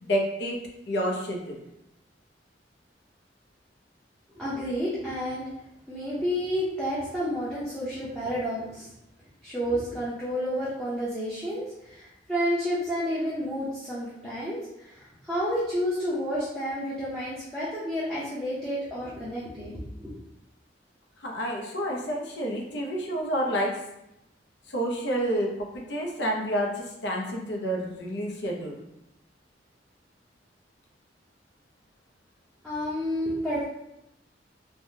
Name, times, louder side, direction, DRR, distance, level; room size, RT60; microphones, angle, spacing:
voice 1, 0.0-0.6 0.9-1.6 21.2-23.8 24.7-28.8, equal, 70° left, 0 dB, 0.6 m, -29 dB
voice 2, 4.3-5.5 5.9-8.9 9.4-20.1 32.6-33.6, equal, 5° left, -10 dB, 0.6 m, -30 dB
3.3 x 2.2 x 2.7 m, 0.86 s
head